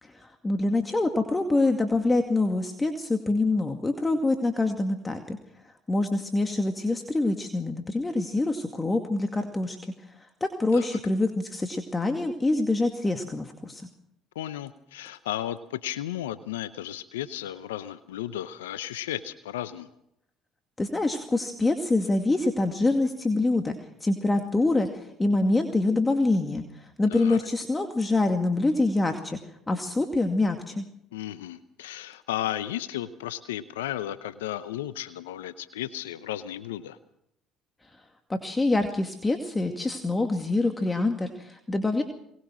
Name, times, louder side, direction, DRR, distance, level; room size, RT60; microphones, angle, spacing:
voice 1, 0.0-5.4 5.9-9.8 10.4-13.9 20.8-23.8 24.0-29.4 29.7-30.9 38.3-42.0, left 2 dB, 20° left, 5 dB, 2.3 m, -25 dB
voice 2, 14.3-19.9 27.1-27.4 31.1-37.0, left 12 dB, 85° left, 14 dB, 0.8 m, -34 dB
22.5 x 20.0 x 6.3 m, 0.75 s
hypercardioid pair, 60°, 0 cm